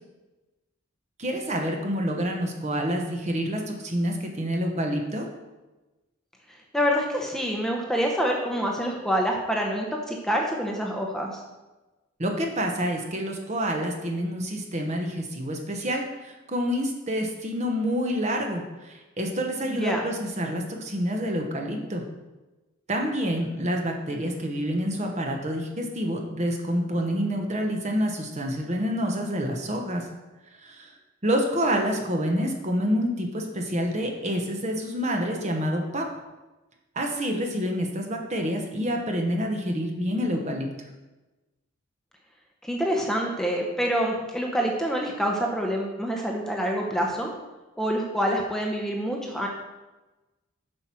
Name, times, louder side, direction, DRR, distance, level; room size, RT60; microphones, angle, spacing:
voice 1, 1.2-5.3 12.2-16.1 16.5-22.0 22.9-30.0 30.6-30.9 31.2-36.1 36.9-40.7, equal, 35° right, 2 dB, 1.0 m, -27 dB
voice 2, 6.7-11.3 19.7-20.0 42.6-47.3 47.8-49.5, equal, ahead, 0 dB, 0.8 m, -26 dB
7.6 x 6.1 x 4.5 m, 1.1 s
head